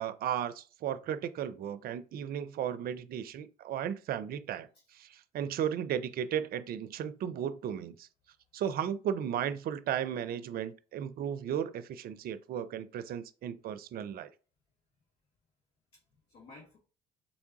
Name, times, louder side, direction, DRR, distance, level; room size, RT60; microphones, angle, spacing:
voice 1, 0.0-4.7 5.0-8.1 8.5-14.3, right 9 dB, 55° right, 0.5 m, -35 dB
voice 2, 5.4-5.8 15.9-16.8, left 3 dB, 65° left, 1.4 m, -57 dB
4.0 x 3.5 x 2.8 m
hypercardioid pair, 55°, 18 cm